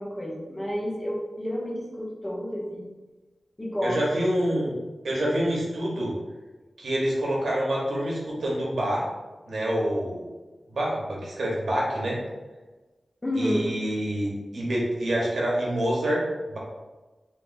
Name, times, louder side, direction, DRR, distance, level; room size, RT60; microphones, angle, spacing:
voice 1, 0.0-2.9 3.6-4.0 4.3-4.5 13.2-13.7, equal, 25° left, -3 dB, 0.9 m, -30 dB
voice 2, 3.8-4.7 5.0-6.1 6.8-9.0 9.5-10.3 10.7-12.2 13.3-16.6, right 1 dB, 85° right, -4 dB, 1.0 m, -27 dB
3.2 x 3.1 x 2.6 m, 1.2 s
wide cardioid pair, 65°, 0 cm